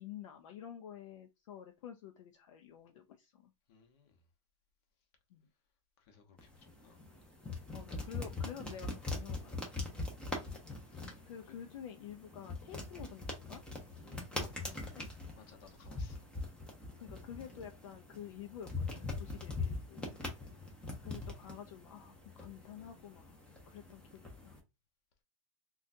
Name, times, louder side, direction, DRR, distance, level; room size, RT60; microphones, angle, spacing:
voice 1, 0.0-3.5 5.3-5.5 7.7-10.0 11.3-13.6 14.4-15.0 17.0-20.2 21.0-23.4 23.7-24.6, left 9 dB, 65° left, 0.5 m, -50 dB
voice 2, 3.7-4.1 6.0-7.0 10.4-11.2 14.0-14.4 15.4-16.2 20.4-20.8, left 5 dB, 45° left, 1.0 m, -62 dB
sound 1, 6.4-24.6, left 3 dB, 5° left, 0.8 m, -43 dB
3.7 x 2.4 x 2.6 m
supercardioid pair, 145°, 17 cm